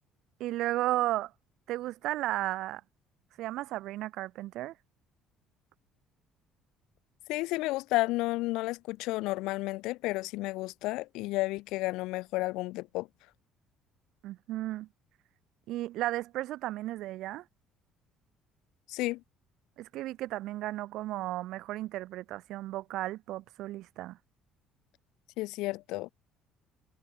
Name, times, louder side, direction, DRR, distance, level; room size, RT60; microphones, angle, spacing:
voice 1, 0.4-1.3 1.7-2.8 3.4-4.7 14.2-14.9 15.7-17.4 19.8-24.2, right 15 dB, 70° right, 0.5 m, -34 dB
voice 2, 7.3-13.1 18.9-19.2 25.4-26.1, left 20 dB, 80° left, 0.3 m, -32 dB
cardioid pair, 145°, 0 cm